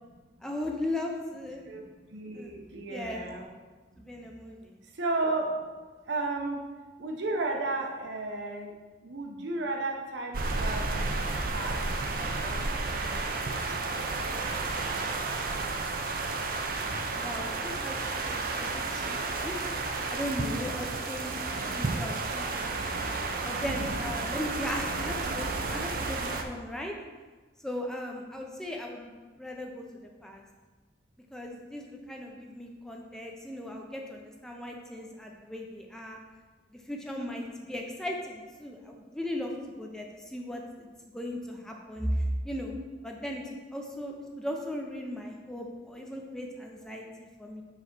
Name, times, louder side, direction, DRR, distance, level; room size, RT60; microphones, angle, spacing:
voice 1, 0.4-1.6 2.3-2.5 2.9-3.2 4.0-4.6 17.1-19.5 20.1-22.7 23.4-26.9 27.6-29.1 29.4-29.8 30.2-30.4 31.3-36.2 36.9-39.5 39.8-40.9 41.1-42.7 43.0-47.6, left 1 dB, 5° left, 0 dB, 0.5 m, -37 dB
voice 2, 1.6-3.5 4.1-4.2 4.9-5.6 6.0-6.7 7.0-8.7 9.0-11.3 11.5-11.8 12.4-13.6, right 2 dB, 70° right, 1 dB, 0.9 m, -34 dB
sound 1, 10.3-26.4, right 3 dB, 50° right, 0.5 m, -32 dB
4.9 x 4.1 x 5.9 m, 1.3 s
head